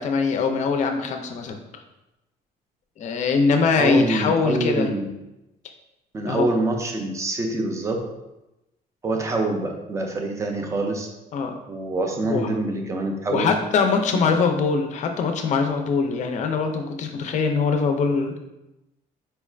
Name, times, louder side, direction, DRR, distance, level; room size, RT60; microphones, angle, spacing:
voice 1, 0.0-1.6 3.0-4.9 6.2-6.5 11.3-11.6 12.2-12.5 13.3-18.4, left 5 dB, 45° left, 5 dB, 0.4 m, -22 dB
voice 2, 3.8-5.0 6.1-8.1 9.0-11.1 11.7-13.5 14.1-14.3, right 2 dB, 15° right, 3 dB, 0.4 m, -25 dB
4.4 x 2.4 x 3.1 m, 0.95 s
cardioid pair, 175°, 17 cm